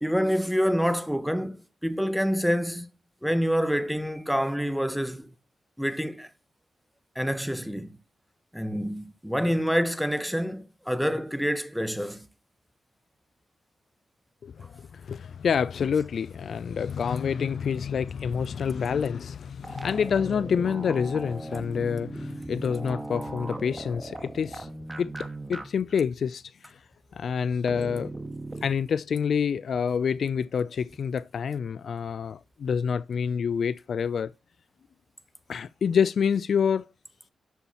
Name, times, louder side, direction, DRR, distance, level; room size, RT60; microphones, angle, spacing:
voice 1, 0.0-2.9 3.2-5.3 5.8-6.3 7.1-7.9 8.5-12.3, equal, ahead, 1.2 m, -27 dB
voice 2, 14.4-24.7 25.0-26.8 27.1-28.1 28.6-34.3 35.5-36.9, left 7 dB, 65° left, 0.4 m, -27 dB
sound 1, 19.6-25.6 25.9-26.0 27.7-28.7, right 2 dB, 15° right, 1.8 m, -38 dB
11.0 x 7.0 x 3.0 m
supercardioid pair, 45°, 0 cm